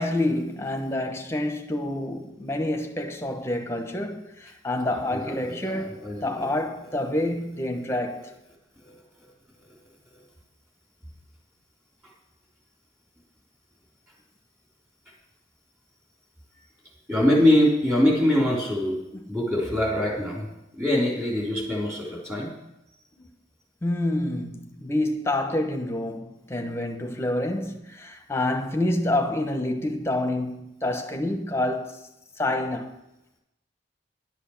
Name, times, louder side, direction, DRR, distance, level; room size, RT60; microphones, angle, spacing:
voice 1, 0.0-8.3 23.2-23.3 23.8-32.0 32.4-32.9, left 1 dB, 15° left, 1.1 m, -28 dB
voice 2, 5.1-6.4 8.8-8.9 17.1-19.0 19.3-20.5 20.7-22.5, left 1 dB, 15° right, 3.4 m, -23 dB
11.0 x 8.3 x 7.1 m
head